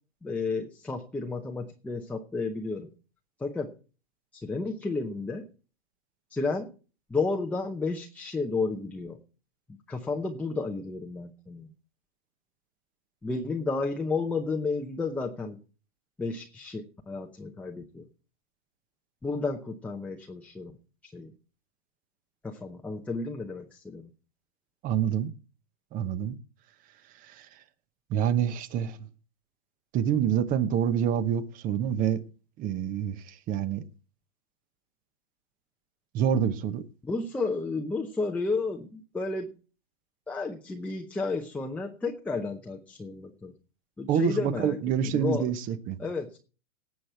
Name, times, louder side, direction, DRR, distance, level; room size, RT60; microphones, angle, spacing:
voice 1, 0.2-2.9 3.4-3.7 4.3-5.5 6.3-6.7 7.1-9.2 9.7-11.7 13.2-15.6 16.2-18.0 19.2-20.7 21.0-21.3 22.4-24.1 37.0-39.5 40.3-43.5 44.0-44.8 45.1-45.5 46.0-46.4, left 3 dB, 5° left, 0.7 m, -32 dB
voice 2, 24.8-25.3 25.9-26.4 27.3-27.5 28.1-29.0 29.9-32.2 32.6-33.8 36.1-36.8 44.1-46.0, right 9 dB, 25° right, 0.9 m, -27 dB
18.5 x 7.8 x 4.4 m
hypercardioid pair, 135°, 35 cm